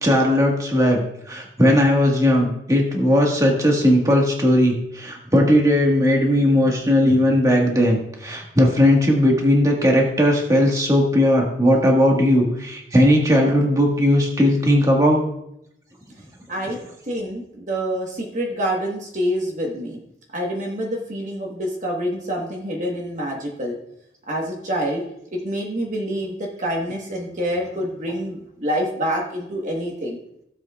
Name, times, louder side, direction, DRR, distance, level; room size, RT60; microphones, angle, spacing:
voice 1, 0.0-15.2, equal, 20° right, -1 dB, 1.6 m, -17 dB
voice 2, 16.5-16.8 17.0-20.0 20.3-23.8 24.3-25.0 25.3-30.2, equal, 45° right, -1 dB, 1.3 m, -26 dB
16.5 x 7.5 x 2.4 m, 0.78 s
head